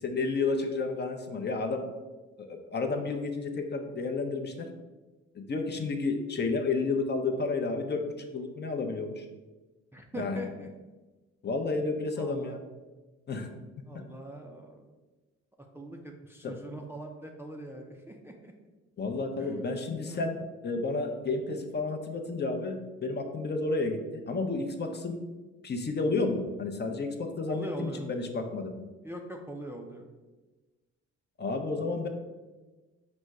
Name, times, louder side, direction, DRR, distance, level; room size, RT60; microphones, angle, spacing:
voice 1, 0.0-1.9 2.4-4.7 5.3-8.0 8.3-9.3 10.1-10.4 11.4-12.6 13.3-13.5 16.4-16.5 19.0-25.2 25.6-28.7 31.4-32.1, left 3 dB, 35° left, 4 dB, 0.6 m, -31 dB
voice 2, 9.9-10.7 12.2-12.6 13.9-14.9 15.7-18.5 19.4-19.6 20.1-20.3 27.5-28.1 29.0-30.1, right 1 dB, 10° right, 1 dB, 0.4 m, -41 dB
5.1 x 2.2 x 4.7 m, 1.2 s
cardioid pair, 90°, 30 cm